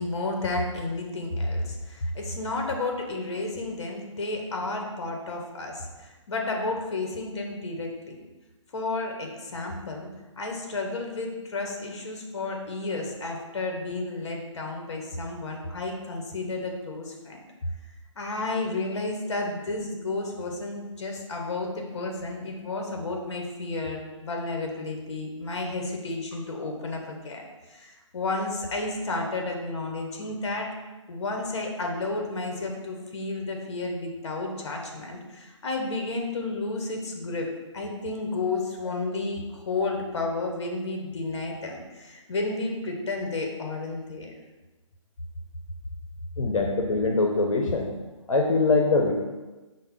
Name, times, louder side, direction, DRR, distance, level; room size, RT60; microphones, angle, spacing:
voice 1, 0.0-8.2 8.7-10.1 10.4-17.4 18.2-27.4 27.7-30.7 31.1-44.3, left 2 dB, 55° left, 2 dB, 0.8 m, -32 dB
voice 2, 46.4-47.9 48.3-49.1, left 3 dB, 85° left, 1 dB, 0.6 m, -23 dB
5.3 x 2.1 x 3.6 m, 1.2 s
hypercardioid pair, 160°, 17 cm